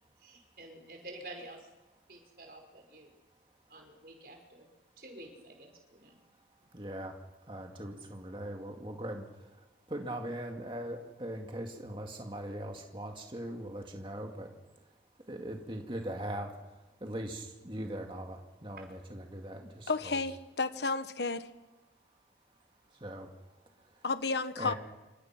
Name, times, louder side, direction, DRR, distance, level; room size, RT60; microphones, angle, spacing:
voice 1, 0.2-1.7 2.1-3.1 3.7-4.7 5.0-6.2 18.8-18.9, right 2 dB, 55° right, 3 dB, 5.5 m, -49 dB
voice 2, 6.7-7.1 7.5-14.5 15.3-16.5 17.0-20.1 22.9-24.0 24.6-24.7, right 1 dB, 30° right, 2 dB, 2.3 m, -41 dB
voice 3, 19.9-21.5 24.0-24.7, left 3 dB, 75° left, 11 dB, 1.3 m, -32 dB
28.5 x 26.5 x 6.1 m, 1.1 s
head